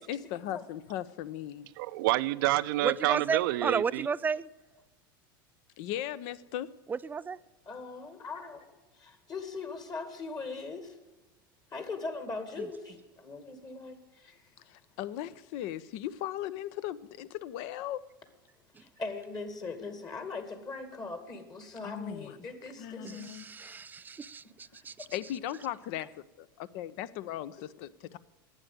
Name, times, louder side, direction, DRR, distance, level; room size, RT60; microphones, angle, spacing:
voice 1, 0.1-1.7 5.8-6.7 14.7-18.0 21.8-22.4 22.8-23.7 25.1-28.2, left 12 dB, 60° left, 0.7 m, -38 dB
voice 2, 1.8-4.1, right 17 dB, 70° right, 0.5 m, -28 dB
voice 3, 2.8-4.5 6.9-7.4 23.0-24.4 24.8-24.9, right 5 dB, 15° right, 0.4 m, -32 dB
voice 4, 7.7-11.0 11.7-14.5 18.8-23.4, left 3 dB, 30° left, 2.1 m, -40 dB
11.5 x 9.0 x 9.4 m
hypercardioid pair, 95°, 12 cm